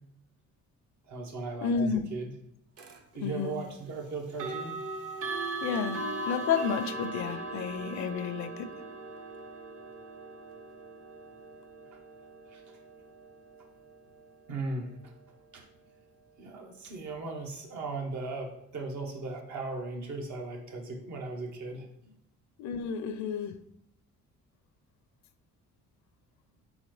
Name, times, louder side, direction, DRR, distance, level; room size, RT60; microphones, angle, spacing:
voice 1, 1.1-2.3 3.1-4.8 12.5-12.8 14.5-15.0 15.5-15.7 16.4-22.1, right 3 dB, 70° right, 1.1 m, -37 dB
voice 2, 1.6-2.1 3.2-3.6 5.6-8.7 22.6-23.6, left 6 dB, 65° left, 0.5 m, -31 dB
sound 1, 2.8-3.0 4.3-15.2, right 2 dB, 50° right, 0.7 m, -39 dB
3.9 x 3.9 x 3.1 m
cardioid pair, 90°, 30 cm